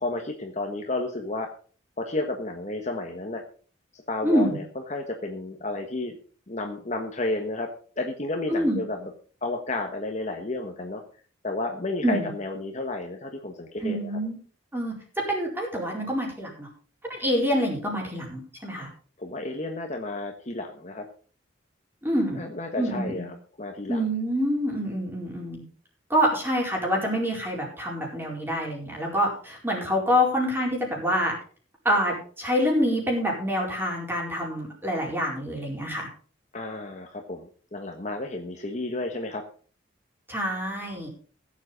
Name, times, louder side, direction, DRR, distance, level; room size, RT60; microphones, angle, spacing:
voice 1, 0.0-1.5 2.0-3.4 4.1-4.6 4.9-6.1 6.5-7.7 8.0-9.0 9.4-11.0 11.4-14.1 19.2-21.1 22.3-24.0 36.5-39.4, left 2 dB, 35° left, 3 dB, 1.4 m, -32 dB
voice 2, 4.2-4.6 8.5-8.8 12.0-12.3 13.8-14.4 14.7-15.0 15.3-16.7 17.1-18.9 22.0-22.4 22.8-23.2 23.9-25.6 26.1-31.3 31.8-36.1 40.3-41.1, equal, 10° right, -1 dB, 4.6 m, -26 dB
16.0 x 7.6 x 5.3 m, 0.42 s
head